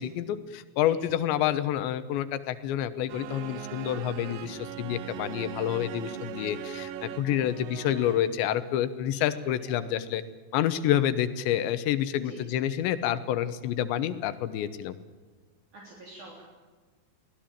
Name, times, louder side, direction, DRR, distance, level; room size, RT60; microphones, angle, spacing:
voice 1, 0.0-10.2 10.5-15.0, left 11 dB, 85° left, 12 dB, 3.3 m, -28 dB
sound 1, 3.1-8.5, right 11 dB, 85° right, 2.0 m, -40 dB
voice 2, 9.4-9.9 12.2-12.4 15.7-16.4, right 3 dB, 45° right, -2 dB, 4.8 m, -46 dB
23.5 x 17.0 x 9.0 m, 1.4 s
omnidirectional pair, 5.1 m